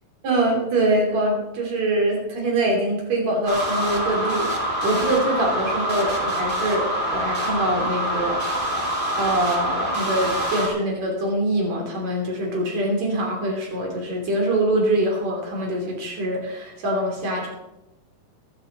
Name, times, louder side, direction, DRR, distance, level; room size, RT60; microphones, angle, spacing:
voice 1, 0.2-8.4 9.2-17.5, right 1 dB, 45° right, 0 dB, 3.9 m, -24 dB
sound 1, 3.5-10.7, equal, 25° right, 1.2 m, -25 dB
15.5 x 11.5 x 4.0 m, 0.98 s
omnidirectional pair, 4.7 m